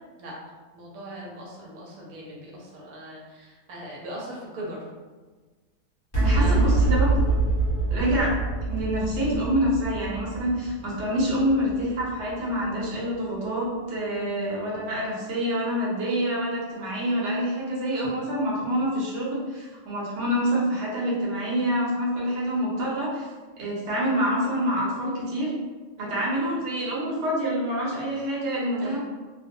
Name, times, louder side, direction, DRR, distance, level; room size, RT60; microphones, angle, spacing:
voice 1, 0.7-4.9 6.3-6.7 14.2-14.3 26.0-26.2 28.8-29.0, equal, 90° right, -4 dB, 1.1 m, -39 dB
Sci-Fi Stinger, 6.1-12.8, right 2 dB, 30° left, 1.0 m, -25 dB
voice 2, 6.1-7.1 7.9-23.3 23.6-25.5 26.0-29.0, equal, 60° right, -6 dB, 1.0 m, -26 dB
2.5 x 2.1 x 2.6 m, 1.3 s
omnidirectional pair, 1.5 m